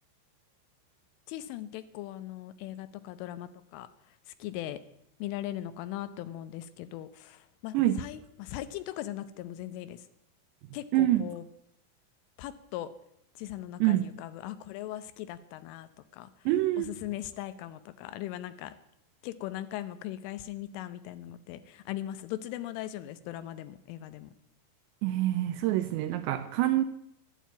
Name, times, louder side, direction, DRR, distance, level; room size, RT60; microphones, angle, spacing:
voice 1, 1.3-3.9 4.4-4.8 5.2-10.1 10.7-11.5 12.4-12.9 13.4-16.3 16.8-18.7 19.2-24.3, left 13 dB, 80° left, 3.3 m, -39 dB
voice 2, 10.9-11.3 13.8-14.1 16.5-16.9 25.0-26.8, right 14 dB, 80° right, 2.6 m, -26 dB
12.5 x 12.0 x 9.3 m
omnidirectional pair, 5.7 m